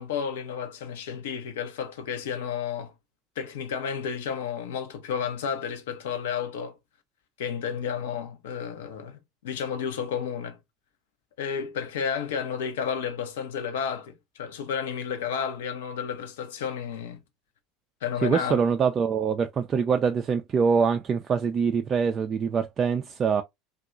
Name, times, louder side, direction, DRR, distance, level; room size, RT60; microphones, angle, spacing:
voice 1, 0.0-2.9 3.4-6.8 7.4-10.6 11.4-17.2 18.0-18.6, left 7 dB, 65° left, 0.6 m, -32 dB
voice 2, 18.2-23.4, right 6 dB, 30° right, 0.3 m, -24 dB
2.8 x 2.3 x 2.3 m
figure-of-eight pair, 75°, 0 cm